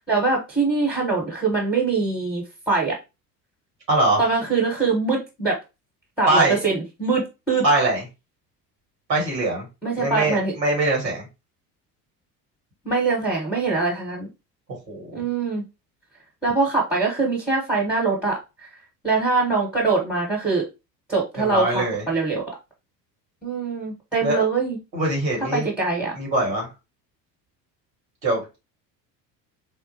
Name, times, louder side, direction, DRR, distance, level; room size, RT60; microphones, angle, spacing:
voice 1, 0.1-2.9 4.2-5.6 6.2-7.6 9.8-10.5 12.8-14.3 15.1-15.6 16.4-18.7 19.0-20.7 21.1-22.6 23.4-24.8 25.5-26.1, right 4 dB, ahead, 1.1 m, -23 dB
voice 2, 3.9-4.2 6.3-6.6 7.6-8.0 9.1-9.7 10.0-11.3 14.9-15.2 21.4-22.0 24.2-24.4 24.9-25.7 26.1-26.7 28.2-28.4, right 2 dB, 85° right, 1.5 m, -22 dB
3.6 x 2.1 x 2.7 m
figure-of-eight pair, 65°, 50 cm